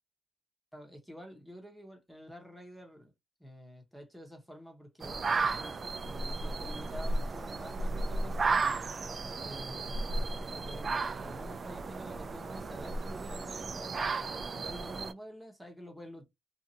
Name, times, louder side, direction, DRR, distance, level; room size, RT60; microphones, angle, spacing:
voice 1, 0.7-3.1 3.4-5.8 6.0-8.7 9.4-16.2, equal, ahead, 0.9 m, -48 dB
sound 1, 5.0-15.1, right 3 dB, 40° right, 0.3 m, -34 dB
2.6 x 2.4 x 2.7 m
cardioid pair, 115°, 0 cm